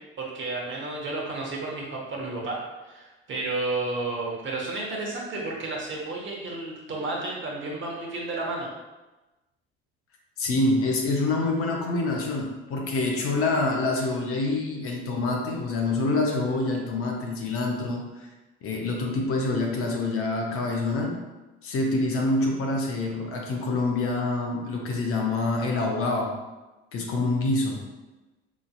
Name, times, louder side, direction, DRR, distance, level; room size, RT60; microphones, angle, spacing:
voice 1, 0.2-2.6 2.8-8.7, right 2 dB, 35° right, -2 dB, 1.1 m, -32 dB
voice 2, 10.4-18.3 18.6-21.2 21.6-26.3 26.9-27.8, left 2 dB, 45° left, 1 dB, 0.8 m, -26 dB
5.0 x 2.6 x 2.4 m, 1.1 s
figure-of-eight pair, 55°, 32 cm